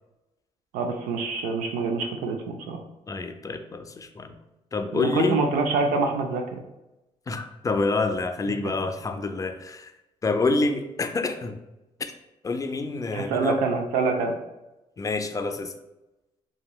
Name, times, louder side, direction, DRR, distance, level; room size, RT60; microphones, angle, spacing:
voice 1, 0.7-2.8 4.9-6.6 13.1-14.3, right 4 dB, 85° right, 3 dB, 0.4 m, -26 dB
voice 2, 3.1-4.4 4.7-5.4 7.3-9.9 10.2-11.5 12.0-12.1 12.4-13.6 15.0-15.7, left 3 dB, 25° left, 7 dB, 0.3 m, -27 dB
2.9 x 2.8 x 2.3 m, 0.98 s
supercardioid pair, 70°, 13 cm